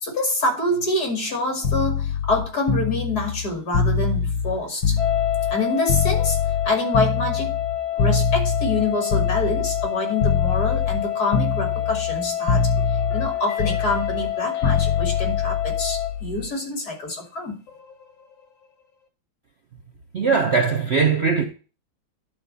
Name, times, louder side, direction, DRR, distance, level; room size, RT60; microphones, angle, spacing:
voice 1, 0.0-4.9 5.5-6.4 6.6-7.5 8.0-12.6 13.1-17.6, left 2 dB, 50° left, 3.2 m, -26 dB
sound 1, 1.6-5.6 5.9-9.9 10.2-11.0 11.3-12.2 12.5-16.5 17.7-17.9, left 6 dB, 75° left, 2.0 m, -24 dB
sound 2, 5.0-16.1, left 11 dB, ahead, 1.1 m, -28 dB
voice 2, 20.1-21.4, right 5 dB, 45° right, 0.9 m, -20 dB
11.0 x 4.5 x 5.4 m
omnidirectional pair, 2.1 m